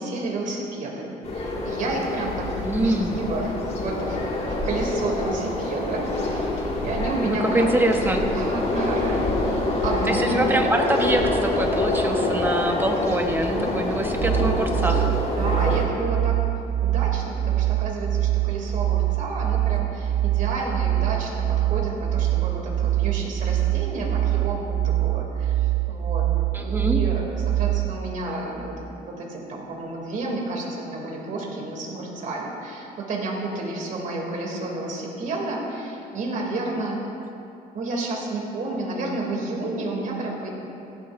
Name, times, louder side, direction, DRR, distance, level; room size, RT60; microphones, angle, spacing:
voice 1, 0.0-2.5 2.8-7.7 8.3-10.5 13.5-13.8 15.3-16.4 16.8-26.3 26.5-37.0 37.7-40.5, right 2 dB, 50° right, -1 dB, 2.8 m, -31 dB
sound 1, 1.2-15.8, left 2 dB, 40° left, 2.1 m, -26 dB
voice 2, 2.6-3.2 7.3-8.2 10.1-15.1 26.5-27.0, right 1 dB, 10° right, 2 dB, 1.1 m, -24 dB
sound 2, 14.2-28.0, right 13 dB, 65° right, 1.2 m, -24 dB
16.0 x 12.0 x 2.6 m, 2.8 s
cardioid pair, 110°, 17 cm